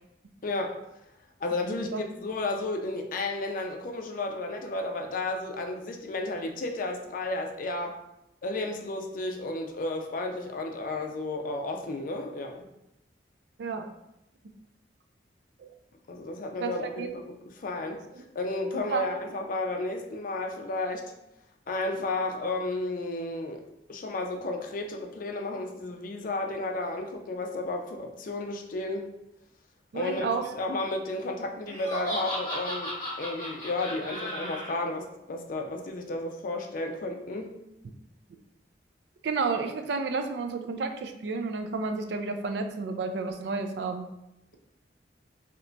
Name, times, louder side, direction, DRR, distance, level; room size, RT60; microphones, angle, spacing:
voice 1, 0.4-0.8 1.4-1.9 2.2-8.0 8.4-12.7 16.1-18.0 18.3-21.1 21.7-23.6 23.9-29.1 29.9-37.5, left 2 dB, 50° left, 3 dB, 0.4 m, -32 dB
voice 2, 1.7-2.0 13.6-13.9 15.6-15.7 16.6-17.1 18.7-19.0 29.9-30.4 39.2-44.1, right 4 dB, 70° right, 6 dB, 0.4 m, -31 dB
Laughter, 31.7-34.7, equal, 25° left, 1.2 m, -35 dB
2.9 x 2.5 x 3.3 m, 0.85 s
head